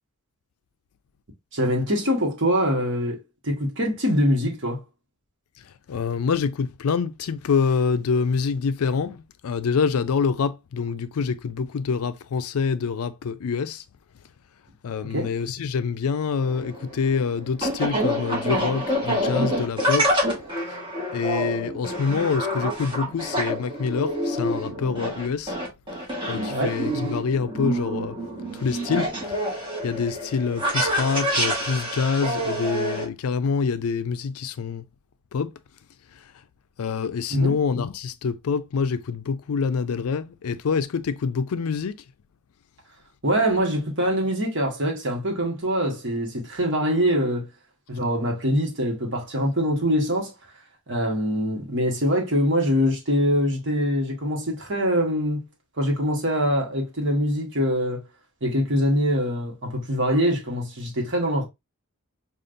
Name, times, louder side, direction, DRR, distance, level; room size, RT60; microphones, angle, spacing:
voice 1, 1.5-4.8 15.0-15.3 26.5-26.8 37.3-37.5 43.2-47.5 47.9-50.3 50.9-55.5 55.8-58.0 58.4-61.4, equal, 55° right, 1.3 m, -24 dB
voice 2, 5.6-13.8 14.8-20.2 20.7-20.8 21.1-25.6 26.3-28.2 28.5-34.8 35.3-35.5 36.1-36.4 36.8-42.0, left 5 dB, 75° left, 0.4 m, -26 dB
sound 1, 16.4-33.0, equal, 20° right, 1.3 m, -27 dB
5.2 x 2.5 x 2.5 m
head